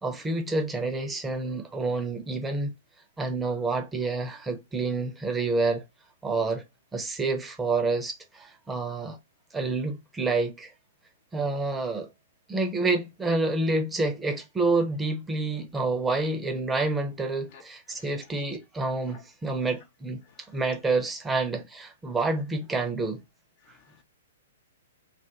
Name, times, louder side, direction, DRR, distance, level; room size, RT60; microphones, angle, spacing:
voice 1, 0.0-2.7 3.2-5.8 6.2-6.6 6.9-9.2 9.5-10.7 11.3-12.1 12.5-20.2 20.5-23.2, right 3 dB, 10° right, 0.5 m, -28 dB
voice 2, 23.6-24.0, left 6 dB, 40° left, 0.4 m, -54 dB
2.3 x 2.1 x 2.8 m
figure-of-eight pair, 110°, 0 cm